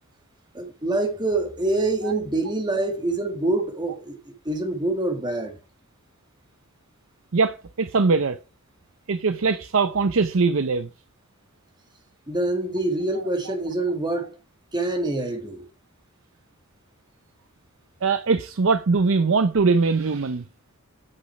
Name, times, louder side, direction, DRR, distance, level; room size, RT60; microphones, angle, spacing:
voice 1, 0.5-5.6 12.3-14.4 14.7-15.6, right 2 dB, 20° right, 2.0 m, -26 dB
voice 2, 7.3-8.4 9.1-10.9 18.0-20.4, right 4 dB, 65° right, 0.6 m, -21 dB
8.8 x 6.4 x 4.6 m
head